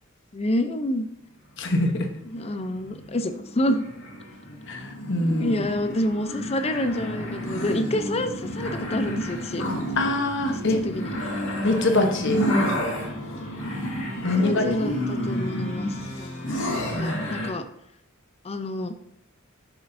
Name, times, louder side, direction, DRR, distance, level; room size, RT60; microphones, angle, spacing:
voice 1, 0.3-1.1 2.3-3.8 5.4-9.6 10.7-11.1 14.2-17.6 18.4-18.9, left 1 dB, 30° left, 9 dB, 0.5 m, -28 dB
voice 2, 1.6-1.9 4.7-5.5 10.0-10.8 11.6-12.4 14.2-14.7 16.9-17.2, left 2 dB, 60° left, 4 dB, 1.0 m, -23 dB
sound 1, 1.9-17.5, equal, 75° left, 1.9 m, -30 dB
6.7 x 6.3 x 2.6 m, 0.79 s
head